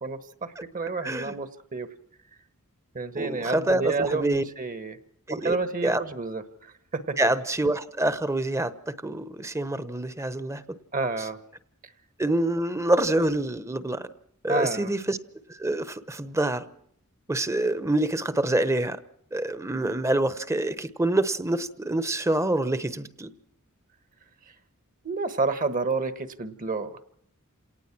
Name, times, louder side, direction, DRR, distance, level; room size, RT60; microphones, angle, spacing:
voice 1, 0.0-1.9 2.9-5.0 5.3-7.2 10.9-11.4 14.5-14.9 25.0-27.0, right 3 dB, 35° right, 12 dB, 1.3 m, -30 dB
voice 2, 1.0-1.3 3.2-4.4 5.3-5.6 5.8-6.0 7.2-10.6 12.2-14.1 14.4-15.2 15.5-16.6 17.3-19.0 19.3-23.3, right 1 dB, 15° right, 14 dB, 1.0 m, -26 dB
28.5 x 18.5 x 6.0 m, 0.69 s
head